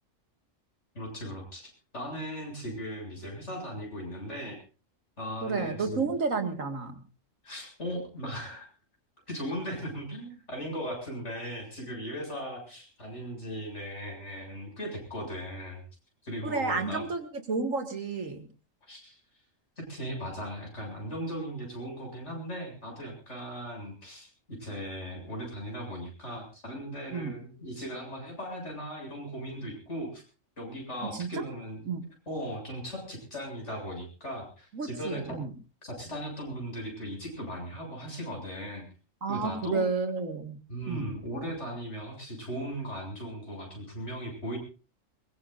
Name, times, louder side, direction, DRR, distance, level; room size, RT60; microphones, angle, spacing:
voice 1, 0.9-1.7 1.9-4.6 5.2-6.1 7.4-8.7 9.3-15.8 16.2-17.1 18.8-19.2 19.8-30.2 30.6-31.8 32.3-35.4 35.8-38.8 39.3-39.8 40.7-44.6, equal, 60° left, 1 dB, 7.9 m, -38 dB
voice 2, 5.4-7.0 16.4-18.4 27.1-27.3 31.1-31.4 31.9-32.0 34.7-35.5 39.2-40.6 40.9-41.1, right 4 dB, 80° right, 5 dB, 2.4 m, -31 dB
22.0 x 22.0 x 2.6 m, 0.36 s
omnidirectional pair, 1.3 m